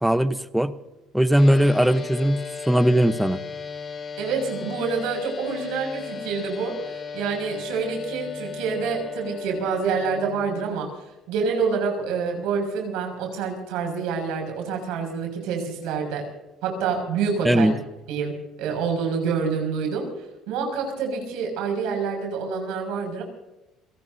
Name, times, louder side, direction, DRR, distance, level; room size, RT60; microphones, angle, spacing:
voice 1, 0.0-0.7 1.1-3.4 17.4-17.8, equal, 5° right, 12 dB, 1.0 m, -19 dB
sound 1, 1.3-10.6, left 5 dB, 35° left, 5.2 m, -36 dB
voice 2, 4.2-6.8 7.1-10.9 11.3-16.3 16.6-17.7 18.1-20.1 20.5-23.2, right 5 dB, 85° right, 2 dB, 6.4 m, -27 dB
28.5 x 18.0 x 2.8 m, 0.97 s
cardioid pair, 125°, 0 cm